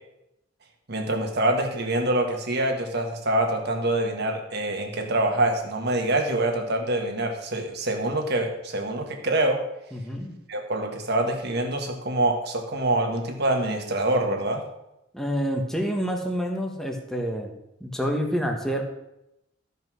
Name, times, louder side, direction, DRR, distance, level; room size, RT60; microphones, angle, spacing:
voice 1, 0.9-9.6 10.5-14.6, right 1 dB, 60° right, 3 dB, 1.7 m, -25 dB
voice 2, 9.9-10.4 15.1-17.5 17.8-18.8, equal, ahead, 2 dB, 1.2 m, -28 dB
13.5 x 5.5 x 6.2 m, 0.87 s
head